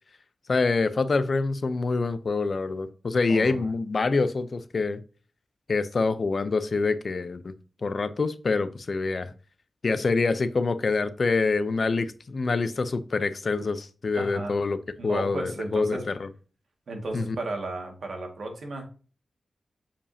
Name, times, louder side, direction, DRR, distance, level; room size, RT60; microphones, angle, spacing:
voice 1, 0.5-5.0 5.7-7.5 7.8-9.3 9.8-14.8 15.0-16.3 17.1-17.4, left 4 dB, 50° left, 0.6 m, -26 dB
voice 2, 3.3-3.7 14.1-14.6 15.0-16.1 16.9-18.8, right 2 dB, 70° right, 1.9 m, -34 dB
7.0 x 5.1 x 2.8 m
wide cardioid pair, 110°, 0 cm